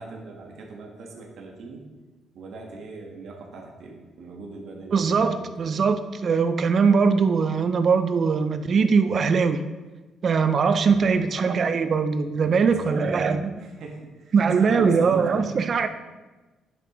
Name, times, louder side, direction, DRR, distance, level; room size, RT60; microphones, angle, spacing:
voice 1, 0.0-1.8 2.3-5.8 10.7-11.2 12.4-15.5, right 3 dB, 70° right, -1 dB, 1.5 m, -39 dB
voice 2, 4.9-9.6 10.2-13.5 14.3-15.9, right 5 dB, 50° right, 10 dB, 0.6 m, -21 dB
10.5 x 5.9 x 3.1 m, 1.2 s
cardioid pair, 90°, 0 cm